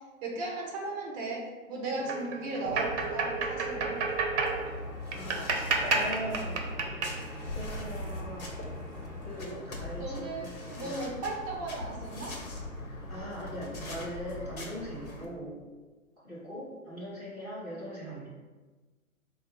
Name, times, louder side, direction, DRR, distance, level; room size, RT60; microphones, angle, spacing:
voice 1, 0.2-3.9 10.0-12.3, right 2 dB, 25° right, -1 dB, 0.8 m, -36 dB
sound 1, 2.0-8.7, right 4 dB, 55° right, 0.7 m, -32 dB
sound 2, 2.7-15.3, left 1 dB, 75° left, 1.1 m, -40 dB
voice 2, 5.1-6.7 7.5-8.5 9.2-11.0 12.9-15.6 16.2-18.3, equal, 5° right, -16 dB, 0.3 m, -40 dB
4.1 x 2.3 x 3.6 m, 1.3 s
figure-of-eight pair, 130°, 42 cm